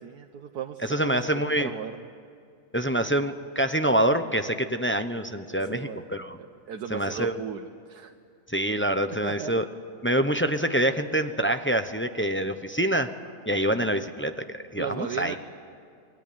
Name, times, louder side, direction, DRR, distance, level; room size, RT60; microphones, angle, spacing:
voice 1, 0.0-2.1 5.7-6.1 6.7-8.1 9.0-9.5 14.8-15.4, right 8 dB, 80° right, 4 dB, 1.5 m, -36 dB
voice 2, 0.8-1.7 2.7-6.4 6.9-7.4 8.5-9.6 10.0-13.1 13.4-15.4, right 1 dB, 10° left, 7 dB, 0.7 m, -26 dB
29.0 x 21.5 x 8.8 m, 2.4 s
omnidirectional pair, 1.7 m